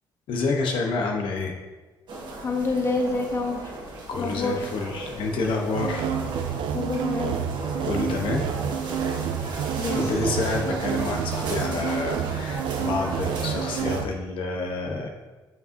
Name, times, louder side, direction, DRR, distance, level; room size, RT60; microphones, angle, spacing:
voice 1, 0.3-1.6 4.1-6.1 7.8-8.5 9.9-15.1, left 3 dB, 75° left, 2 dB, 0.8 m, -28 dB
sound 1, 2.1-14.0, right 2 dB, 60° right, 1.3 m, -36 dB
voice 2, 2.4-3.6 4.2-4.6 6.7-7.4 9.8-10.0, left 3 dB, 30° left, 1 dB, 0.9 m, -27 dB
sound 2, 5.7-14.0, right 8 dB, 80° right, 0.3 m, -29 dB
7.6 x 5.4 x 2.6 m, 1.2 s
cardioid pair, 140°, 9 cm